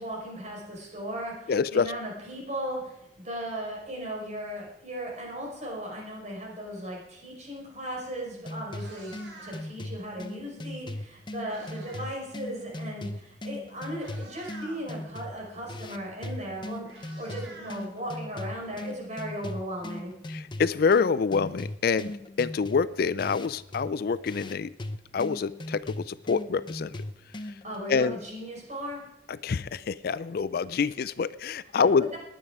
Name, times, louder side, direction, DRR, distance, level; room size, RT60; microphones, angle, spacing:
voice 1, 0.0-9.1 9.4-20.1 27.6-29.0 31.7-32.2, equal, 40° right, -2 dB, 5.1 m, -37 dB
voice 2, 1.5-1.9 20.3-22.1 22.4-24.7 25.1-27.0 27.9-28.2 29.4-32.1, left 5 dB, 55° left, 17 dB, 0.4 m, -26 dB
sound 1, 8.4-27.8, left 1 dB, 25° left, 0.7 m, -39 dB
Meow, 8.7-9.8 10.9-12.2 12.5-12.8 13.5-13.6 13.9-14.8 16.2-16.3 16.5-18.4, right 2 dB, 90° right, 4.7 m, -48 dB
19.5 x 9.2 x 4.9 m, 0.82 s
head